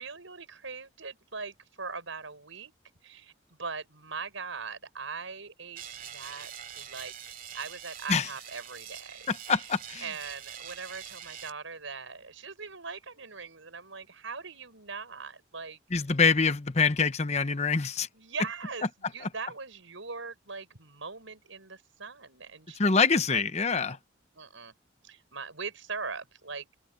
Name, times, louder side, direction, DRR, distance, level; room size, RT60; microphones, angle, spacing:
voice 1, 0.0-2.7 3.0-3.3 3.6-7.1 7.5-9.6 10.0-15.8 18.1-23.0 23.3-23.4 23.8-24.0 24.3-24.7 25.0-26.7, right 5 dB, 85° right, 5.7 m, -41 dB
sound 1, 5.7-11.5, right 9 dB, 45° right, 2.4 m, -44 dB
voice 2, 9.3-10.0 15.9-18.1 22.8-24.0, left 5 dB, 35° left, 0.9 m, -25 dB
open air
head